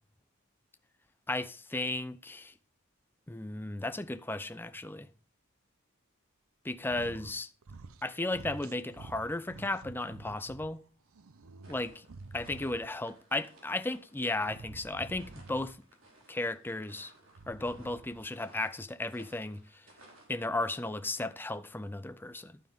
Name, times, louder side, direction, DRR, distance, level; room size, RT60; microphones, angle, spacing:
voice 1, 1.3-2.5 3.3-5.1 6.6-7.5 8.0-10.8 11.7-12.0 12.3-15.8 16.3-17.1 17.5-19.9 20.3-22.6, left 2 dB, 10° left, 0.5 m, -35 dB
sound 1, 6.8-7.4 7.6-8.1 8.3-10.7 11.1-13.0 14.4-15.8 17.2-18.3, right 3 dB, 85° right, 0.7 m, -49 dB
sound 2, 11.6-20.3, right 1 dB, 70° right, 4.2 m, -59 dB
12.0 x 9.0 x 3.6 m
head